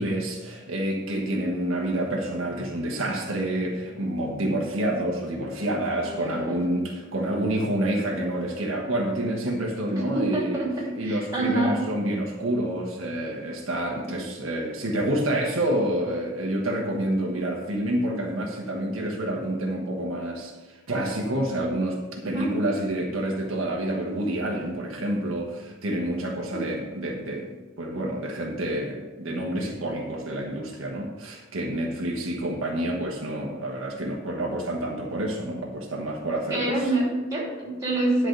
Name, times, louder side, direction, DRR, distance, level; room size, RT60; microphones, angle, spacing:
voice 1, 0.0-10.6 11.0-27.5 27.8-36.8, right 1 dB, 75° right, 0 dB, 1.4 m, -28 dB
voice 2, 6.0-6.7 9.8-11.8 22.2-22.5 26.5-26.6 36.5-38.3, right 2 dB, 15° right, -3 dB, 3.0 m, -27 dB
10.5 x 4.9 x 6.5 m, 1.2 s
head